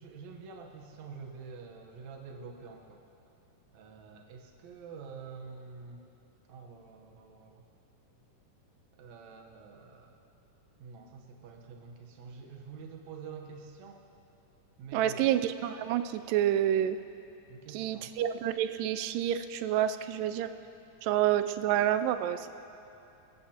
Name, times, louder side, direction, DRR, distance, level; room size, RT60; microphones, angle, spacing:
voice 1, 0.0-3.0 3.7-6.0 6.5-7.6 8.9-10.2 10.8-14.0 14.8-15.3 17.5-18.1, right 5 dB, 65° right, 2 dB, 2.1 m, -47 dB
voice 2, 14.9-17.0 17.7-20.5 21.0-22.5, right 11 dB, 85° right, 11 dB, 2.2 m, -28 dB
19.5 x 14.5 x 2.9 m, 2.9 s
omnidirectional pair, 3.8 m